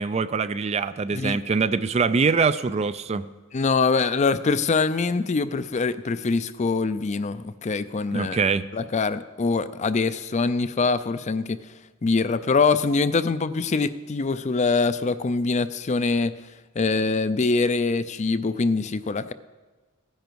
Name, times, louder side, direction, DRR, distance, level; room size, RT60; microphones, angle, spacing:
voice 1, 0.0-3.3 8.1-8.6, right 5 dB, 30° right, 14 dB, 0.3 m, -23 dB
voice 2, 3.5-8.4 8.7-11.6 12.0-16.4 16.8-19.3, left 4 dB, 35° left, 14 dB, 0.4 m, -24 dB
16.0 x 10.5 x 4.6 m, 1.3 s
head